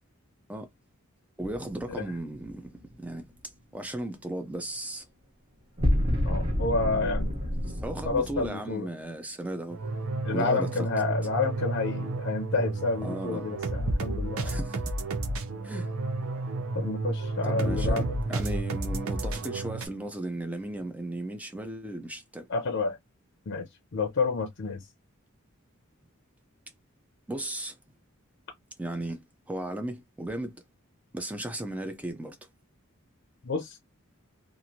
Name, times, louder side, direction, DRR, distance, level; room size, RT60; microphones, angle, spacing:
voice 1, 1.4-2.7 3.0-3.2 3.7-5.1 7.7-9.8 10.3-10.9 13.0-13.4 14.4-14.9 15.6-15.9 17.4-22.5 27.3-27.8 28.8-29.2 29.5-30.6 31.1-32.4, right 1 dB, 5° right, 0.4 m, -35 dB
sound 1, 1.4-2.8 5.8-8.5, equal, 25° right, 0.8 m, -29 dB
voice 2, 6.2-7.3 8.1-8.9 10.2-14.6 16.7-18.1 22.5-23.0 23.5-23.6 23.9-24.8 33.4-33.8, left 3 dB, 55° left, 0.5 m, -29 dB
sound 2, 9.7-19.9, right 2 dB, 80° right, 0.6 m, -31 dB
2.9 x 2.4 x 2.7 m
head